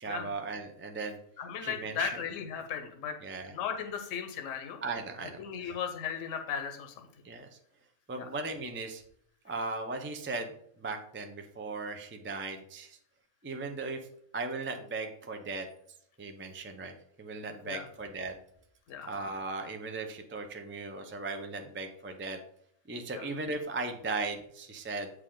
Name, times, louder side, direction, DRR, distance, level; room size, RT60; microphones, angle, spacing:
voice 1, 0.0-1.2 1.6-2.1 3.2-3.5 4.8-5.7 7.2-7.5 8.1-9.0 9.4-13.0 13.4-14.0 14.3-15.7 16.2-18.3 19.0-22.4 22.9-25.1, right 3 dB, 20° right, 5 dB, 0.3 m, -37 dB
voice 2, 1.4-3.2 3.4-4.8 5.2-7.1 8.2-8.3 17.6-17.9 18.9-19.1 23.1-23.3, left 7 dB, 70° left, 6 dB, 1.1 m, -36 dB
8.2 x 4.8 x 3.8 m, 0.66 s
omnidirectional pair, 1.4 m